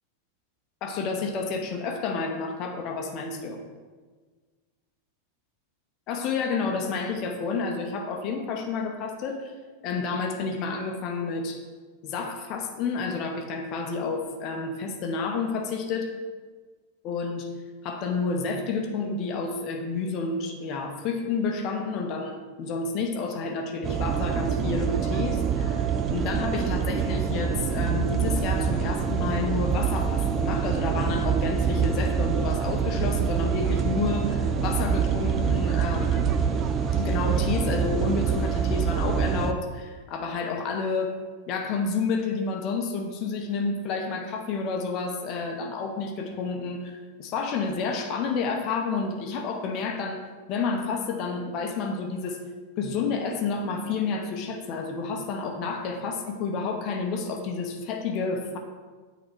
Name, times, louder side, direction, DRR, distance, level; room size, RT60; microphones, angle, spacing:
voice 1, 0.8-3.6 6.1-9.5 9.8-11.6 12.0-16.1 17.0-17.5 17.8-25.9 26.1-36.2 37.0-41.1 41.5-50.2 50.5-52.4 52.8-58.6, left 4 dB, 40° left, 3 dB, 0.8 m, -30 dB
sound 1, 23.8-39.5, right 7 dB, 30° right, 0.4 m, -25 dB
8.5 x 3.0 x 4.6 m, 1.4 s
figure-of-eight pair, 90°, 0 cm